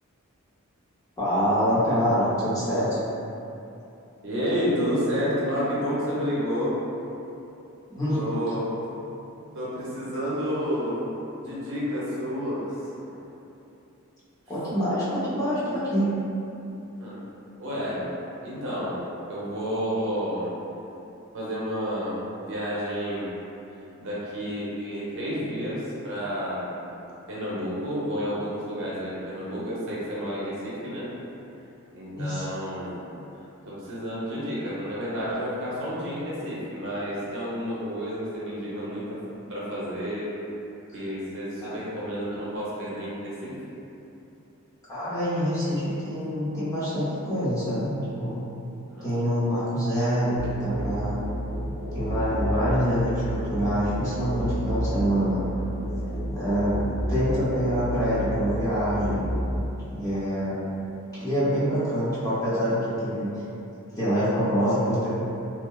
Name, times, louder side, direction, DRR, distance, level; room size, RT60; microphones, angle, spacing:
voice 1, 1.2-3.0 7.9-8.3 14.5-16.1 32.1-32.4 41.6-41.7 44.9-48.4 49.0-51.2 51.9-55.5 56.3-56.8 57.1-59.3 59.9-60.6 61.1-63.3 64.0-65.1, equal, 15° left, -12 dB, 0.8 m, -25 dB
voice 2, 4.2-6.7 8.1-8.7 9.5-11.1 11.3-12.9 17.0-17.2 17.6-18.1 18.4-20.5 21.3-23.3 24.0-26.8 27.3-31.1 31.9-33.0 33.6-39.2 39.5-40.3 40.9-43.5 48.9-49.1, equal, 60° right, -8 dB, 0.6 m, -30 dB
Musical instrument, 50.4-59.6, equal, 70° left, 1.1 m, -30 dB
3.1 x 2.0 x 2.3 m, 2.8 s
head